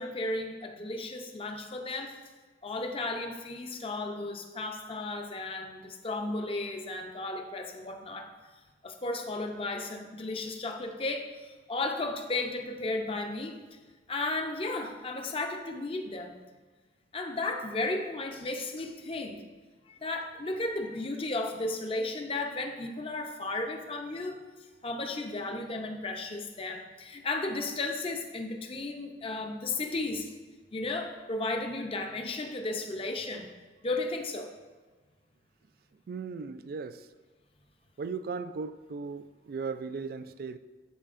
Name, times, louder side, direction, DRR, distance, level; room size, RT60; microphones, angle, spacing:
voice 1, 0.0-2.1 2.6-8.3 8.8-13.6 14.1-16.3 17.1-19.4 19.9-24.4 24.8-30.3 30.7-33.5 33.8-34.5, left 2 dB, 30° left, 4 dB, 0.6 m, -34 dB
voice 2, 36.1-37.0 38.0-40.6, right 5 dB, 55° right, 12 dB, 0.3 m, -37 dB
13.0 x 4.4 x 2.5 m, 1.3 s
head